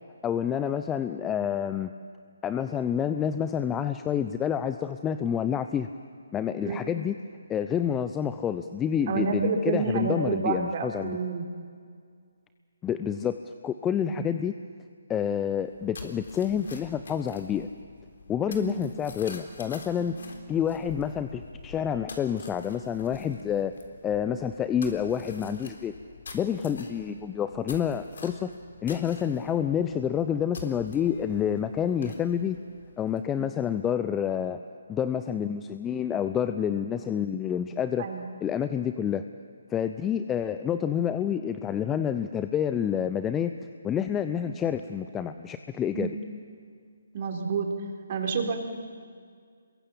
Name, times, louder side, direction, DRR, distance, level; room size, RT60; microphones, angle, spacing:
voice 1, 0.2-1.9 2.4-5.9 6.3-7.1 7.5-11.2 12.8-13.4 13.6-14.5 15.1-17.7 18.3-20.2 20.5-23.7 24.0-25.9 26.3-28.5 28.8-32.6 33.0-34.6 34.9-38.1 38.4-39.2 39.7-43.5 43.8-46.1, left 8 dB, 15° left, 10 dB, 0.6 m, -28 dB
voice 2, 9.1-11.4 14.1-14.3 18.5-18.7 27.1-27.2 33.4-33.5 38.0-38.3 45.9-46.1 47.1-47.7 48.1-48.6, right 5 dB, 40° right, 3 dB, 4.0 m, -29 dB
sound 1, 15.6-33.5, left 4 dB, 65° left, 3.8 m, -47 dB
27.5 x 22.0 x 8.7 m, 2.1 s
figure-of-eight pair, 150°, 0 cm